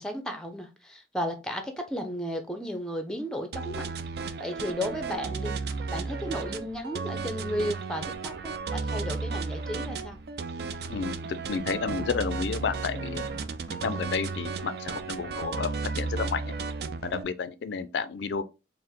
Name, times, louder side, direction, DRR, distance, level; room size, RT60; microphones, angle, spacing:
voice 1, 0.0-3.9 4.2-5.6 5.9-10.2, equal, 5° left, 0.5 m, -34 dB
sound 1, 3.5-17.2, right 4 dB, 55° right, 0.3 m, -34 dB
sound 2, 7.0-10.0 11.0-14.5 15.1-16.0, left 1 dB, 20° right, 1.1 m, -52 dB
voice 2, 10.9-13.2 13.7-16.5 17.0-18.4, left 6 dB, 75° left, 0.4 m, -31 dB
4.4 x 2.0 x 3.5 m
head